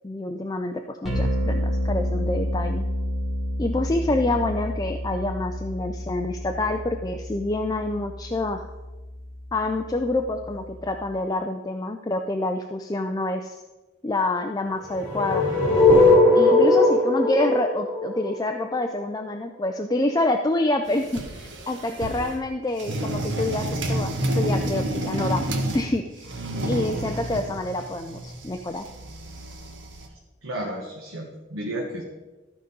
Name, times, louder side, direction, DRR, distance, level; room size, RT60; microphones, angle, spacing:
voice 1, 0.0-2.8 3.6-8.7 9.5-13.6 14.0-15.4 16.3-25.5 25.7-26.3 26.6-28.8, left 2 dB, 20° left, 5 dB, 0.4 m, -27 dB
sound 1, 1.0-11.1, equal, ahead, 2.8 m, -30 dB
sound 2, 14.9-19.0, left 2 dB, 40° left, 3.3 m, -18 dB
sound 3, 20.9-22.4 22.8-25.9 26.2-30.1, right 1 dB, 65° right, 1.3 m, -29 dB
voice 2, 30.4-32.0, right 1 dB, 85° right, -2 dB, 1.4 m, -32 dB
13.5 x 5.1 x 5.4 m, 1.2 s
head